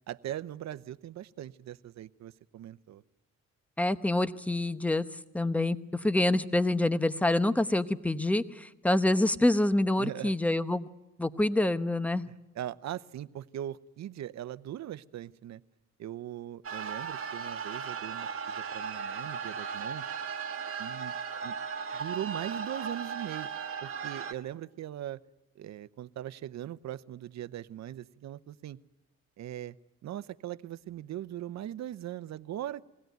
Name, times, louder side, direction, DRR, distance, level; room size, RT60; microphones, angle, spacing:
voice 1, 0.1-3.0 10.0-10.3 12.6-15.6 16.0-20.1 20.8-21.1 21.4-21.6 21.9-23.5 23.8-25.2 25.6-28.8 29.4-29.7 30.0-32.8, right 12 dB, 65° right, 15 dB, 0.8 m, -40 dB
voice 2, 3.8-5.1 5.3-10.9 11.2-12.3, left 1 dB, 5° left, 12 dB, 0.9 m, -26 dB
sound 1, 16.6-24.3, right 6 dB, 45° right, 1.5 m, -37 dB
22.5 x 16.5 x 9.2 m, 1.0 s
cardioid pair, 90°, 30 cm